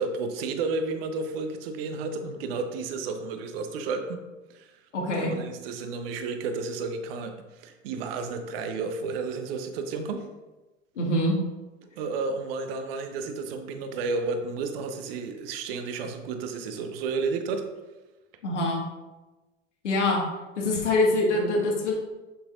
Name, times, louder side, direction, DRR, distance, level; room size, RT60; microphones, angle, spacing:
voice 1, 0.0-4.2 4.5-4.7 5.1-10.3 12.0-17.7, right 4 dB, 50° right, 6 dB, 1.0 m, -32 dB
voice 2, 4.9-5.3 11.0-11.4 18.4-18.8 19.8-20.2 20.6-22.0, left 2 dB, 70° left, -1 dB, 2.0 m, -24 dB
7.8 x 6.9 x 2.6 m, 1.1 s
figure-of-eight pair, 85°, 38 cm